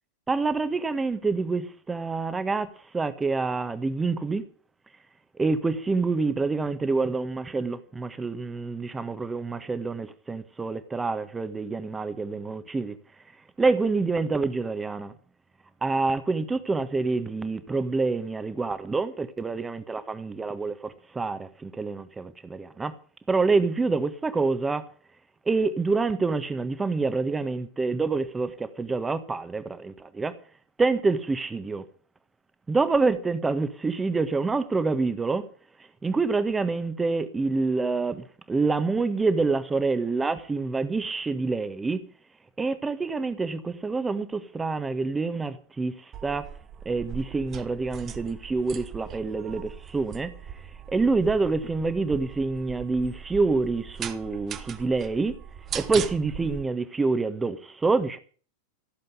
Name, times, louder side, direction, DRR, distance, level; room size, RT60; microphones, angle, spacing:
voice 1, 0.3-4.4 5.3-13.0 13.6-15.1 15.8-22.9 23.3-24.9 25.4-30.4 30.8-31.8 32.7-35.5 36.0-42.1 42.6-46.5 46.8-55.4 55.7-58.2, right 3 dB, 10° right, 1.6 m, -27 dB
sound 1, 46.1-56.6, right 8 dB, 30° right, 1.4 m, -39 dB
15.0 x 7.7 x 9.5 m
figure-of-eight pair, 90°, 0 cm